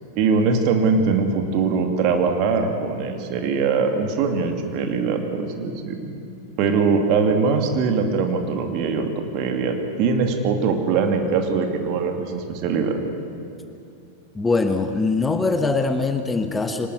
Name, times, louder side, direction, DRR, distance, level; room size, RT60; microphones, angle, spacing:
voice 1, 0.2-6.2 6.6-13.0, right 5 dB, 40° right, 4 dB, 2.6 m, -22 dB
voice 2, 14.3-16.9, left 3 dB, 10° left, 7 dB, 1.2 m, -22 dB
24.0 x 19.5 x 7.9 m, 2.7 s
figure-of-eight pair, 90°, 0 cm